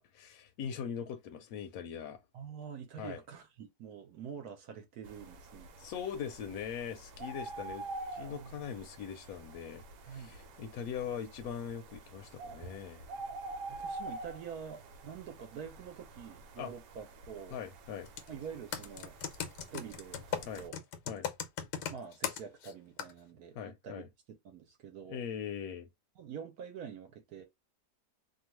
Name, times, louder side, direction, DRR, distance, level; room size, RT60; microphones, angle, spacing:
voice 1, 0.0-2.2 3.0-3.2 5.8-13.0 16.6-16.7 17.5-18.1 20.5-20.7 21.1-21.3 23.5-24.1 25.1-25.9, left 8 dB, 70° left, 1.0 m, -41 dB
voice 2, 2.3-5.7 8.3-8.6 10.1-10.4 13.2-13.4 13.7-17.6 18.3-19.2 19.7-20.7 21.9-25.2 26.2-27.5, right 7 dB, 70° right, 1.1 m, -46 dB
sound 1, 5.0-20.7, right 2 dB, 90° right, 1.3 m, -47 dB
Computer keyboard, 18.1-18.3 18.7-22.7 23.0-23.1, left 8 dB, 90° left, 1.2 m, -37 dB
2.8 x 2.3 x 2.9 m
omnidirectional pair, 1.8 m